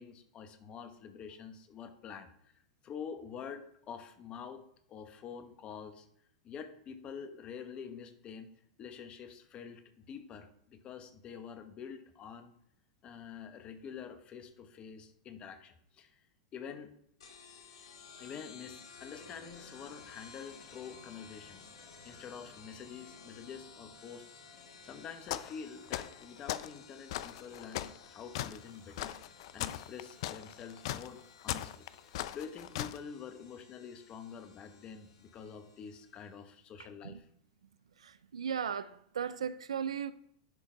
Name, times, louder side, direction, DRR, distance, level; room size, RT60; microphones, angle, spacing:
voice 1, 0.0-2.3 2.5-4.6 4.9-6.1 6.4-8.5 8.8-12.5 13.0-16.2 16.5-16.9 18.2-21.7 22.0-24.4 24.8-29.2 29.5-37.2, left 7 dB, 35° left, 1.1 m, -47 dB
sound 1, 17.2-36.4, left 5 dB, 80° left, 1.7 m, -55 dB
sound 2, 25.3-25.6 25.9-26.7 27.1-33.0, left 14 dB, 60° left, 0.4 m, -38 dB
voice 2, 38.0-40.1, right 7 dB, 90° right, 0.4 m, -36 dB
11.0 x 3.8 x 4.5 m
hypercardioid pair, 110°, 3 cm